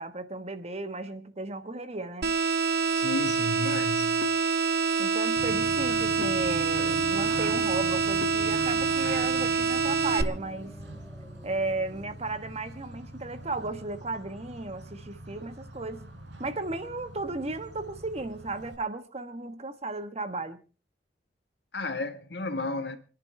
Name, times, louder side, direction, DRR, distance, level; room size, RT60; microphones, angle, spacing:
voice 1, 0.0-2.3 5.0-10.8 11.4-16.1 16.4-20.6, right 2 dB, 35° right, 1.3 m, -35 dB
sound 1, 2.2-10.2, right 5 dB, 60° right, 1.0 m, -26 dB
voice 2, 2.9-4.3 21.7-23.0, left 2 dB, 65° left, 1.6 m, -33 dB
Bird / Train, 5.4-18.7, right 1 dB, 90° right, 4.1 m, -43 dB
sound 2, 6.1-12.5, equal, ahead, 1.3 m, -44 dB
28.0 x 11.0 x 3.4 m
head